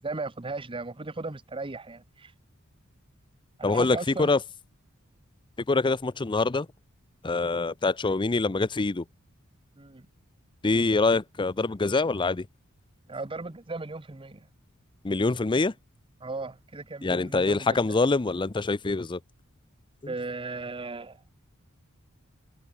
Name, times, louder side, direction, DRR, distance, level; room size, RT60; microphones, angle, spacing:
voice 1, 0.0-2.3 3.6-4.4 9.8-10.1 13.1-14.5 16.2-18.0 20.1-21.2, right 3 dB, 25° right, 1.0 m, -36 dB
voice 2, 3.6-4.4 5.7-6.7 7.2-9.0 10.6-12.5 15.0-15.7 17.0-19.2, left 3 dB, 20° left, 0.5 m, -25 dB
head